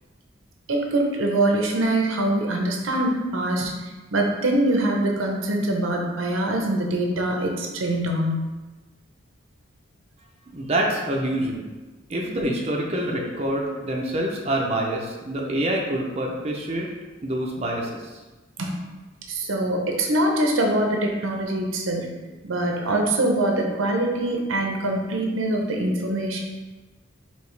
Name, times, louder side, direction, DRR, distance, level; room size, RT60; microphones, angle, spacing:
voice 1, 0.7-8.5 18.6-18.7 19.3-22.1 22.4-26.4, right 1 dB, 85° right, 1 dB, 0.7 m, -24 dB
voice 2, 10.5-11.7 12.1-16.9 17.2-18.1, right 1 dB, 30° right, -1 dB, 0.5 m, -26 dB
4.8 x 2.9 x 3.2 m, 1.2 s
head